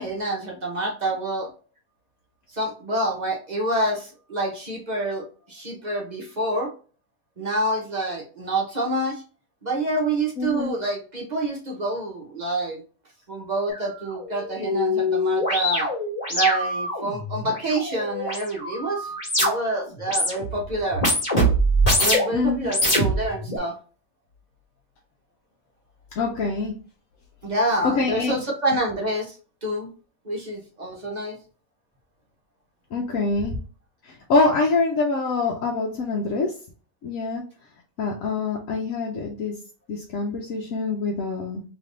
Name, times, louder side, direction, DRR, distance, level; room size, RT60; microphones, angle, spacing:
voice 1, 0.0-1.5 2.5-6.7 7.4-9.2 9.6-12.8 13.3-15.9 16.3-19.1 19.4-21.0 22.0-23.7 27.4-29.4 29.6-29.9 30.2-31.4, right 1 dB, 35° right, 0 dB, 0.9 m, -27 dB
voice 2, 10.4-10.8 22.3-22.7 26.1-26.8 27.8-28.4 32.9-33.6 34.0-36.6 37.0-37.4 38.0-39.6 39.9-41.6, left 3 dB, 75° left, 1 dB, 1.1 m, -25 dB
sound 1, 13.7-13.8 14.1-19.8 20.0-20.6 20.9-22.4 22.7-23.6, equal, 25° left, 1.9 m, -24 dB
3.4 x 3.0 x 3.8 m, 0.38 s
omnidirectional pair, 1.5 m